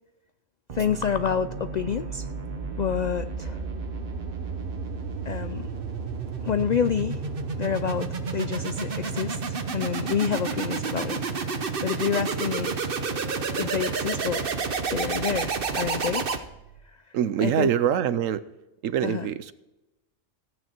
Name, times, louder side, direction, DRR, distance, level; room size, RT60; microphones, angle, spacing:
voice 1, 0.7-2.3 2.8-3.6 5.3-5.7 6.4-7.2 7.6-11.2 11.5-12.8 13.6-14.5 14.9-16.3 17.4-17.7 19.0-19.3, left 7 dB, 90° left, 12 dB, 0.3 m, -28 dB
sound 1, 0.7-16.8, right 4 dB, 50° right, 1.1 m, -31 dB
voice 2, 17.1-18.4 18.8-19.5, right 9 dB, 80° right, 14 dB, 1.1 m, -24 dB
14.5 x 9.3 x 4.4 m, 1.0 s
omnidirectional pair, 1.3 m